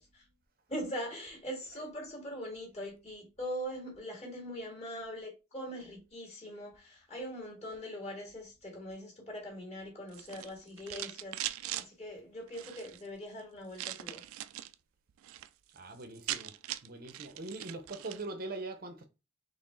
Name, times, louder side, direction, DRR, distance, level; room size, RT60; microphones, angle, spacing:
voice 1, 0.7-14.2, equal, 30° left, 1.9 m, -42 dB
sound 1, 10.1-11.9 12.5-13.0 13.7-14.7 15.1-15.5 15.8-15.9 16.0-18.3, right 13 dB, 85° right, 0.3 m, -40 dB
voice 2, 15.7-16.6 16.8-19.0, right 2 dB, 45° right, 0.6 m, -42 dB
4.3 x 3.2 x 3.1 m
head